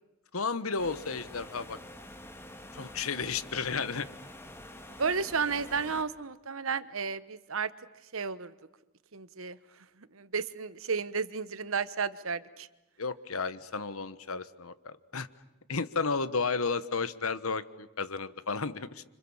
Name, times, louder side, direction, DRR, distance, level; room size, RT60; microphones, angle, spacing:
voice 1, 0.3-1.8 2.7-4.1 13.0-15.3 15.7-19.0, left 4 dB, 75° left, 15 dB, 1.2 m, -33 dB
sound 1, 0.8-6.0, left 1 dB, 10° left, 1.6 m, -47 dB
voice 2, 5.0-7.7 8.1-8.5 9.1-9.6 10.1-12.7, right 5 dB, 70° right, 15 dB, 1.1 m, -32 dB
30.0 x 27.0 x 7.3 m, 1.0 s
head